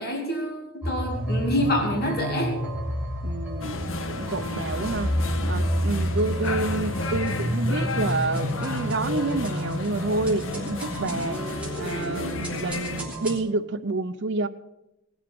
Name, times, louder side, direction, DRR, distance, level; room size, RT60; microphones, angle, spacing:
voice 1, 0.0-2.6, equal, 50° left, 2.6 m, -27 dB
sound 1, 0.8-13.4, equal, 5° right, 3.1 m, -30 dB
voice 2, 3.2-5.1 5.5-11.4 11.8-14.5, right 2 dB, 60° right, 0.7 m, -28 dB
sound 2, 3.6-13.0, left 3 dB, 75° left, 1.1 m, -33 dB
19.0 x 7.3 x 7.0 m
head